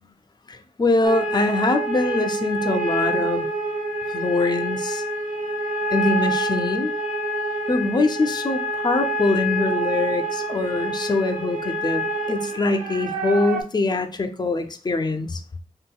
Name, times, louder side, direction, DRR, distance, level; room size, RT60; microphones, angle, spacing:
voice 1, 0.5-3.5 4.1-5.0 5.9-6.9 7.7-15.4, left 2 dB, 30° left, 8 dB, 0.4 m, -23 dB
sound 1, 1.0-13.6, right 1 dB, 90° right, 0.7 m, -27 dB
3.6 x 2.8 x 2.3 m, 0.37 s
wide cardioid pair, 90°, 13 cm